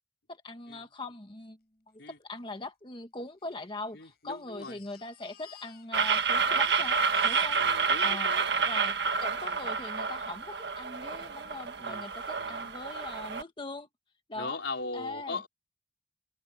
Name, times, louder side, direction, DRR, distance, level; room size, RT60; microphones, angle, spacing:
voice 1, 0.3-1.6 2.1-7.6 8.0-13.9 14.3-14.6 14.9-15.4, left 2 dB, 30° left, 1.5 m, -41 dB
Crying sobbing, 2.2-2.3 2.5-2.6 3.4-6.3 6.5-9.1 9.9-10.0 10.4-10.5, left 10 dB, 60° left, 6.0 m, -57 dB
voice 2, 3.9-4.8 7.5-8.7 11.8-12.0 12.4-12.6 14.3-15.5, left 3 dB, 90° left, 4.4 m, -39 dB
sound 1, 5.9-13.4, right 5 dB, 65° right, 1.5 m, -29 dB
head